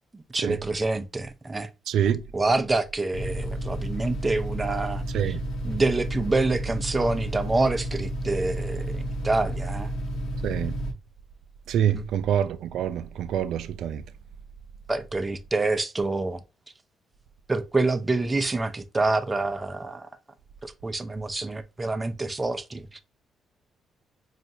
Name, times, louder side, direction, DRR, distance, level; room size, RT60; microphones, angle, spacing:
voice 1, 0.1-1.7 2.3-5.4 5.6-9.9 11.8-12.1 14.9-16.4 17.5-20.1 20.6-23.0, right 2 dB, 20° right, 0.5 m, -27 dB
voice 2, 1.9-2.2 5.1-5.4 10.4-10.8 11.7-14.0, right 9 dB, 80° right, 0.3 m, -26 dB
sound 1, 3.1-10.9, right 1 dB, 85° left, 0.8 m, -31 dB
4.2 x 2.4 x 2.7 m
cardioid pair, 90°, 0 cm